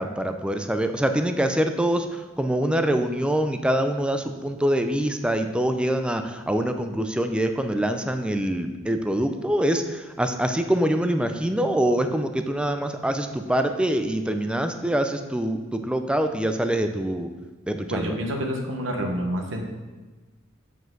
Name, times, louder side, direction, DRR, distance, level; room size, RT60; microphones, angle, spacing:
voice 1, 0.0-17.3 17.7-18.2, right 1 dB, 5° right, 7 dB, 0.4 m, -25 dB
voice 2, 17.9-19.6, equal, 75° right, 3 dB, 1.1 m, -28 dB
7.7 x 5.1 x 3.8 m, 1.2 s
head